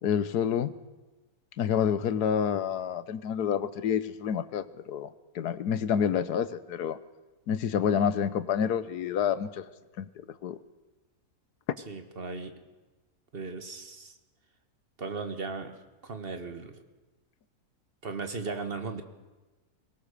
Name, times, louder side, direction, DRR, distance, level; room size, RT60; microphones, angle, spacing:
voice 1, 0.0-0.7 1.6-5.1 5.3-7.0 7.5-9.7 10.0-10.1 10.4-10.6, left 8 dB, 85° left, 14 dB, 1.5 m, -28 dB
voice 2, 11.9-12.5 13.3-14.1 15.0-15.8 16.0-16.7 18.0-19.0, right 4 dB, 40° right, 7 dB, 1.8 m, -36 dB
22.5 x 19.5 x 6.7 m, 1.2 s
omnidirectional pair, 1.7 m